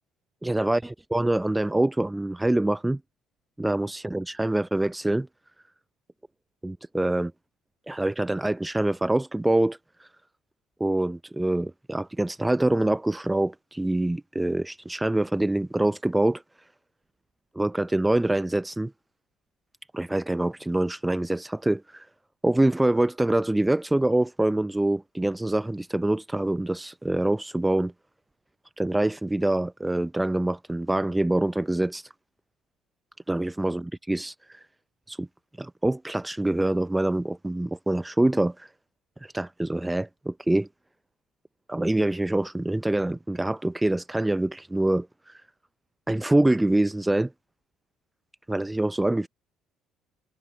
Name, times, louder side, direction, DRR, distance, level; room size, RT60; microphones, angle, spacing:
voice 1, 0.4-3.0 3.6-5.3 6.6-7.3 7.9-10.1 10.8-16.4 17.6-18.9 19.9-22.1 22.4-27.9 28.8-32.1 33.3-34.6 35.1-35.3 35.6-38.7 39.2-40.7 41.7-45.4 46.1-47.3 48.5-49.3, right 1 dB, 10° right, 0.5 m, -25 dB
hypercardioid pair, 65°, 0 cm